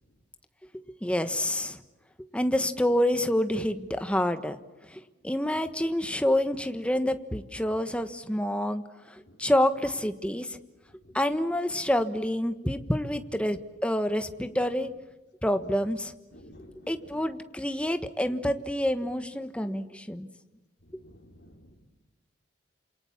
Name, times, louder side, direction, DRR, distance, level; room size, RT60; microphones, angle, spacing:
voice 1, 0.7-1.8 2.3-4.6 4.9-10.6 11.1-14.9 15.4-16.1 16.9-20.3, left 1 dB, 5° left, 9 dB, 1.3 m, -28 dB
voice 2, 16.3-17.3 17.8-17.9 20.8-21.8, equal, 55° left, 1 dB, 4.3 m, -53 dB
28.5 x 27.5 x 7.4 m, 1.1 s
head